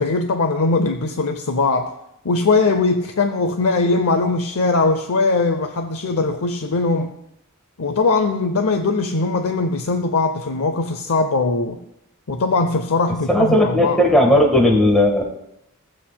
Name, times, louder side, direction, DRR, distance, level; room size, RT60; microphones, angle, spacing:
voice 1, 0.0-1.9 2.2-7.1 7.8-11.8 12.3-14.0, left 3 dB, 70° left, 5 dB, 0.7 m, -20 dB
voice 2, 13.3-15.2, left 1 dB, 5° left, -1 dB, 1.4 m, -15 dB
17.5 x 7.6 x 2.2 m, 0.80 s
head